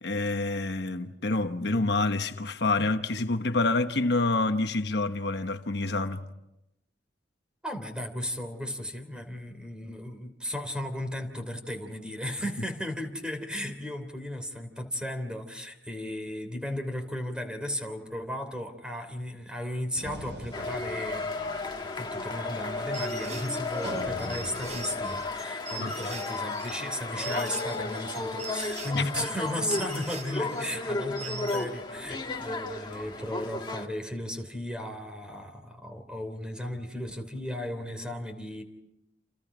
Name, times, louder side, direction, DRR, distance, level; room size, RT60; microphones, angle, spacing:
voice 1, 0.0-6.2 25.8-26.1 28.9-29.0, left 2 dB, 65° left, 1.1 m, -27 dB
voice 2, 7.6-21.6 21.9-38.6, left 1 dB, 5° right, 3.1 m, -35 dB
sound 1, 19.9-25.2, equal, 80° right, 5.7 m, -44 dB
sound 2, 20.5-33.9, left 2 dB, 25° left, 1.8 m, -34 dB
sound 3, 22.9-31.7, right 4 dB, 40° right, 3.9 m, -43 dB
29.0 x 28.5 x 5.0 m
head